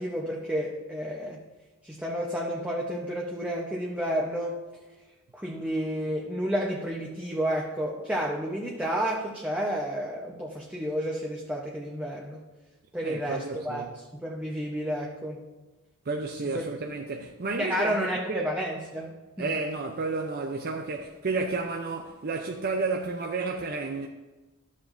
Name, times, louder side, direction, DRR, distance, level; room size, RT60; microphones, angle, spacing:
voice 1, 0.0-1.4 1.8-4.6 5.3-12.4 12.9-13.9 14.1-15.4 17.6-19.5, equal, 5° right, 0.8 m, -31 dB
voice 2, 13.0-13.9 16.1-18.0 18.3-18.5 19.4-24.1, right 3 dB, 45° right, 0.6 m, -31 dB
13.0 x 7.3 x 2.6 m
head